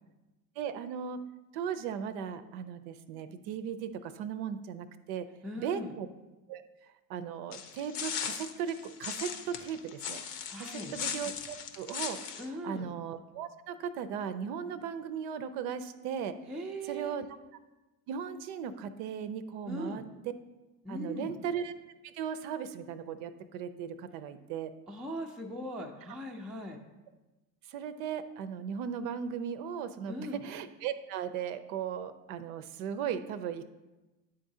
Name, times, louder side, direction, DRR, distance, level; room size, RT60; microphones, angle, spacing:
voice 1, 0.6-1.2 1.5-5.3 5.6-6.1 6.5-6.6 7.1-10.2 10.6-16.3 16.9-17.3 18.1-20.0 20.9-21.7 22.0-24.7 27.7-33.7, right 7 dB, 60° right, 10 dB, 0.6 m, -37 dB
voice 2, 5.4-5.9 10.5-10.9 12.4-12.9 16.5-17.2 19.6-20.0 20.8-21.3 24.9-26.8 30.1-30.4, equal, ahead, 0 dB, 0.4 m, -39 dB
sound 1, 7.5-12.5, left 7 dB, 70° left, 0.8 m, -38 dB
9.8 x 3.8 x 2.7 m, 1.1 s
hypercardioid pair, 85°, 50 cm